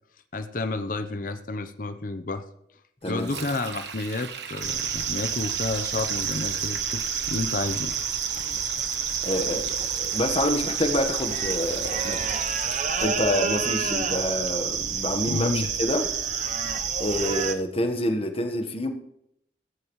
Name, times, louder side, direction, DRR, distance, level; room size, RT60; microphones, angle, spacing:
voice 1, 0.3-2.5 3.1-7.9 15.3-15.7, left 3 dB, 50° left, 9 dB, 0.7 m, -30 dB
Sink (filling or washing), 3.0-13.1, right 7 dB, 80° right, 1.2 m, -40 dB
sound 1, 4.6-17.5, right 7 dB, 45° right, 0.8 m, -28 dB
voice 2, 9.2-12.2 13.0-16.0 17.0-18.9, left 1 dB, 35° left, 6 dB, 1.3 m, -27 dB
16.0 x 13.5 x 3.1 m, 0.77 s
head